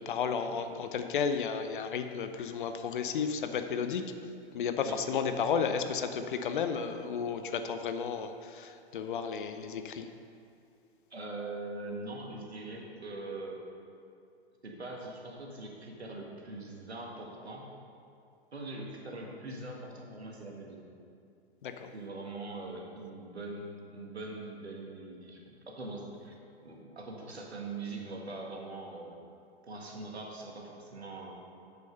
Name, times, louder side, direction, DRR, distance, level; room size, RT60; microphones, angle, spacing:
voice 1, 0.0-4.1 4.5-10.1 21.6-21.9, left 6 dB, 50° left, 8 dB, 0.7 m, -33 dB
voice 2, 11.1-13.6 14.6-17.7 18.5-20.9 21.9-29.2 29.7-31.3, right 2 dB, 75° right, 0 dB, 1.7 m, -42 dB
8.1 x 6.8 x 5.4 m, 2.5 s
figure-of-eight pair, 110°, 32 cm